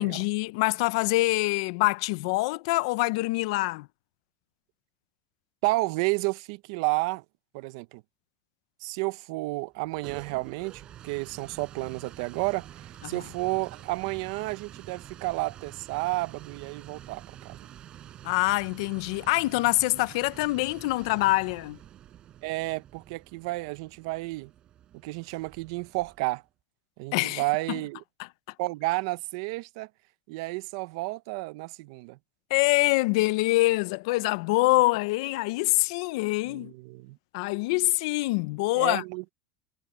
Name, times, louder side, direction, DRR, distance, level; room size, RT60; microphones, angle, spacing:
voice 1, 0.0-3.9 13.0-13.2 18.2-21.8 27.1-27.4 27.7-27.8 32.5-36.7 37.3-39.0, left 21 dB, 70° left, 0.5 m, -25 dB
voice 2, 5.6-7.2 7.5-8.0 8.8-17.6 22.4-24.5 25.0-26.4 27.0-28.0 28.6-29.9 30.3-32.2 36.5-37.2 38.7-39.3, right 23 dB, 65° right, 0.6 m, -31 dB
sound 1, 9.7-26.5, right 11 dB, 30° right, 5.6 m, -48 dB
cardioid pair, 165°, 3 cm